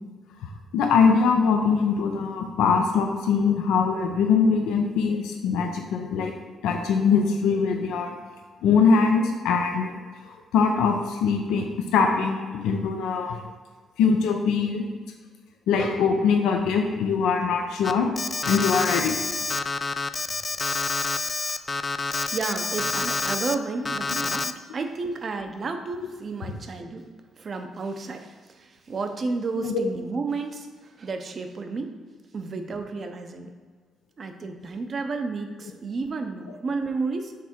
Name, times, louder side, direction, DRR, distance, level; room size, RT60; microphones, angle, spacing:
voice 1, 0.7-6.3 6.6-8.1 8.6-10.0 10.5-11.7 11.9-13.4 14.0-14.9 15.7-18.1 18.4-19.2 29.6-29.8, left 5 dB, 85° left, 3 dB, 0.6 m, -22 dB
Alarm, 17.8-23.6 23.9-24.5, left 3 dB, 25° left, 0.3 m, -28 dB
voice 2, 22.3-27.1 27.4-28.3 28.6-30.7 31.0-31.9 32.3-33.5 34.2-37.3, right 4 dB, 45° right, 6 dB, 0.7 m, -31 dB
6.0 x 3.5 x 4.4 m, 1.5 s
supercardioid pair, 70°, 0 cm